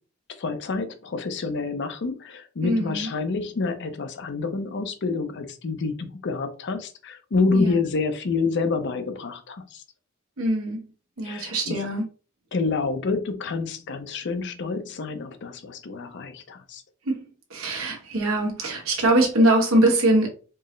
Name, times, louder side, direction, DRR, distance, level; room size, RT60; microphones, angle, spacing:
voice 1, 0.4-9.8 11.2-11.8 12.5-16.8, left 4 dB, 55° left, 9 dB, 0.5 m, -28 dB
voice 2, 2.6-3.1 7.5-7.8 10.4-10.8 11.2-12.1 17.0-17.2 17.5-20.3, right 1 dB, 85° right, 1 dB, 1.2 m, -22 dB
4.4 x 2.0 x 3.1 m, 0.37 s
head